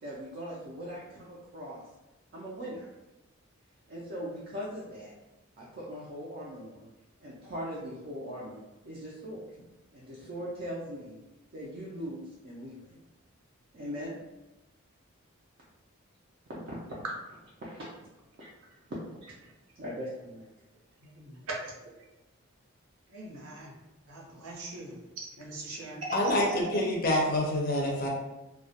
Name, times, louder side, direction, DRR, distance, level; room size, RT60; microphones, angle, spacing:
voice 1, 0.0-1.8 2.3-2.9 3.9-5.1 5.6-6.9 7.2-9.4 9.9-11.2 11.5-13.0 13.7-14.1 16.7-16.8 17.6-17.9 18.4-18.5 18.9-19.2 19.8-20.5, equal, 50° right, -6 dB, 0.4 m, -40 dB
voice 2, 21.0-21.7 23.1-23.7 24.1-25.0 25.4-26.0 26.2-26.6, right 2 dB, 90° right, -2 dB, 0.7 m, -39 dB
voice 3, 26.1-28.1, left 1 dB, 40° left, -1 dB, 0.4 m, -27 dB
2.2 x 2.0 x 2.7 m, 1.0 s
head